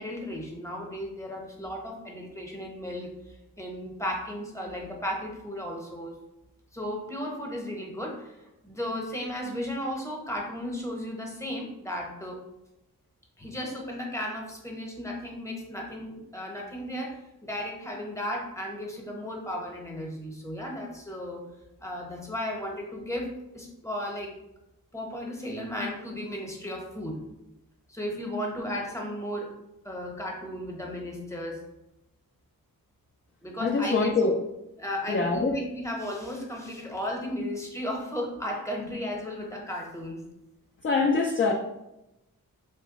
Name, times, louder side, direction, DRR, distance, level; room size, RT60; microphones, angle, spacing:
voice 1, 0.0-3.1 3.6-6.1 6.7-8.4 8.6-12.4 13.4-21.5 21.8-23.3 23.5-24.3 24.9-27.2 27.9-29.5 29.8-31.6 33.4-34.1 34.8-40.2, equal, 10° left, -1 dB, 0.9 m, -35 dB
voice 2, 33.6-34.4 35.1-35.6 40.8-41.5, left 4 dB, 35° left, 2 dB, 0.4 m, -24 dB
3.0 x 2.2 x 4.0 m, 0.90 s
cardioid pair, 50°, 35 cm